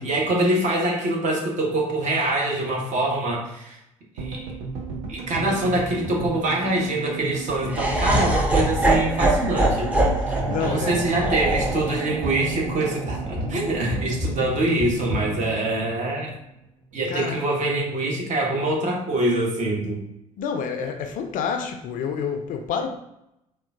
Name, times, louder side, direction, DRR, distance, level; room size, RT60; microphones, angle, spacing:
voice 1, 0.0-3.8 4.2-4.4 5.1-9.9 10.3-16.3 16.9-20.0, right 1 dB, 40° right, -1 dB, 1.0 m, -24 dB
sound 1, 4.2-16.4 16.6-16.7 16.9-17.0, right 4 dB, 70° right, 0.7 m, -34 dB
Laughter, 7.7-13.8, right 1 dB, 5° right, 0.6 m, -24 dB
sound 2, 10.3-15.7, equal, 25° right, 1.3 m, -34 dB
voice 2, 10.5-11.1 17.1-17.4 20.4-22.9, left 6 dB, 45° left, 5 dB, 0.4 m, -28 dB
3.7 x 2.1 x 2.5 m, 0.83 s
figure-of-eight pair, 55°, 18 cm